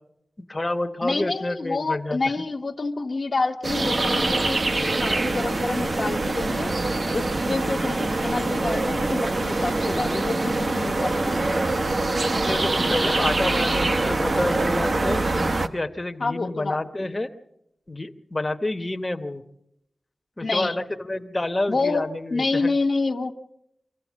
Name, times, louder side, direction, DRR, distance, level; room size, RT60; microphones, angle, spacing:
voice 1, 0.5-2.2 12.4-15.2 15.7-17.3 17.9-19.4 20.4-22.7, left 2 dB, 25° left, 5 dB, 1.0 m, -28 dB
voice 2, 1.0-6.7 7.1-11.5 16.2-17.1 20.4-20.8 21.7-22.0 22.3-23.3, left 3 dB, 50° left, 4 dB, 1.0 m, -28 dB
sound 1, 3.6-15.7, right 2 dB, 50° right, 1.1 m, -24 dB
25.5 x 15.0 x 7.4 m, 0.81 s
wide cardioid pair, 105°, 0 cm